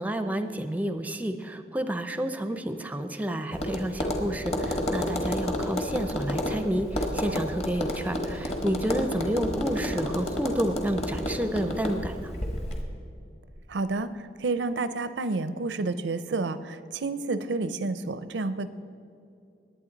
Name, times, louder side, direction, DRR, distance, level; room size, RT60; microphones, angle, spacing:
voice 1, 0.0-12.3, right 1 dB, 10° right, 8 dB, 0.5 m, -30 dB
Tap, 3.5-12.8, left 1 dB, 35° left, 1.3 m, -31 dB
voice 2, 13.7-14.1 14.4-18.7, right 3 dB, 85° right, 13 dB, 0.6 m, -29 dB
19.5 x 8.9 x 3.9 m, 2.6 s
head